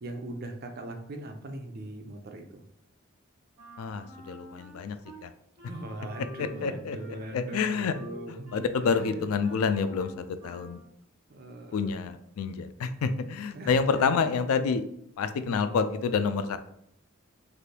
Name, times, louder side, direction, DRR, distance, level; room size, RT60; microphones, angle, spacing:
voice 1, 0.0-2.6 5.7-9.3 11.3-12.1 13.5-14.2 15.5-15.9, right 1 dB, 45° right, 4 dB, 0.4 m, -40 dB
Wind instrument woodwind instrument, 3.6-5.2 5.6-10.9, equal, 20° right, 1.2 m, -49 dB
voice 2, 3.8-5.0 5.2-5.3 6.4-7.0 7.3-7.9 8.5-10.8 11.7-14.8 15.2-16.6, left 5 dB, 85° left, 11 dB, 0.3 m, -28 dB
3.2 x 2.5 x 2.8 m, 0.73 s
head